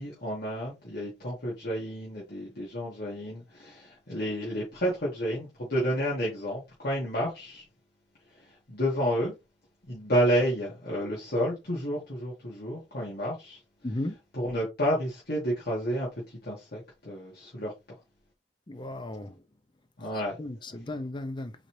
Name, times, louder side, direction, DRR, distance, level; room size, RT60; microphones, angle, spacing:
voice 1, 0.0-7.6 8.3-9.3 9.9-14.0 14.3-17.7 20.0-20.4, equal, 60° left, 1.9 m, -30 dB
voice 2, 18.7-19.3 20.4-21.5, left 1 dB, 25° left, 0.6 m, -35 dB
4.1 x 4.0 x 3.2 m
head